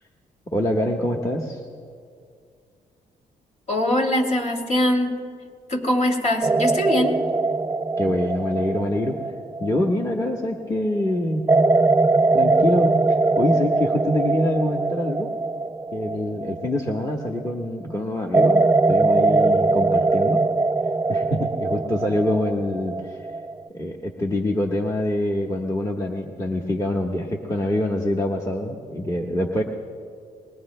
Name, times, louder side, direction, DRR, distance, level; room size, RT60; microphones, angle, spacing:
voice 1, 0.5-1.6 8.0-9.2 9.6-11.5 12.3-13.0 13.4-15.3 15.9-20.4 21.1-23.2 23.7-29.6, left 1 dB, 20° left, 0 dB, 1.3 m, -25 dB
voice 2, 3.7-5.2 5.7-7.2, left 1 dB, 45° left, 2 dB, 2.8 m, -22 dB
sound 1, 6.4-10.6 11.5-17.5 18.3-23.7, right 3 dB, 15° right, 0.4 m, -21 dB
29.5 x 21.5 x 2.2 m, 2.2 s
cardioid pair, 85°, 16 cm